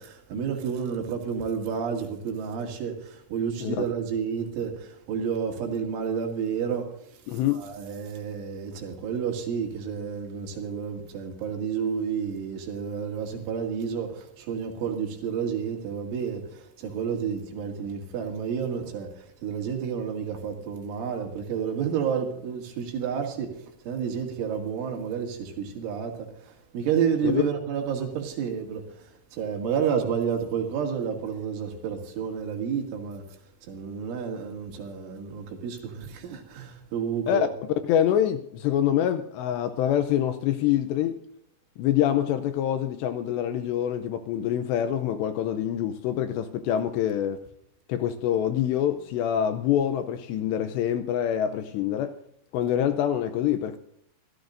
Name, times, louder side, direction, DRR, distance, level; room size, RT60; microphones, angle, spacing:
voice 1, 0.0-33.2 33.6-37.4, right 7 dB, 75° right, 4.7 m, -30 dB
voice 2, 7.3-7.6 27.2-27.5 37.3-37.5 37.8-41.2 41.8-47.4 47.9-52.2 52.5-53.8, left 10 dB, 80° left, 2.6 m, -25 dB
25.5 x 14.5 x 2.6 m
omnidirectional pair, 5.6 m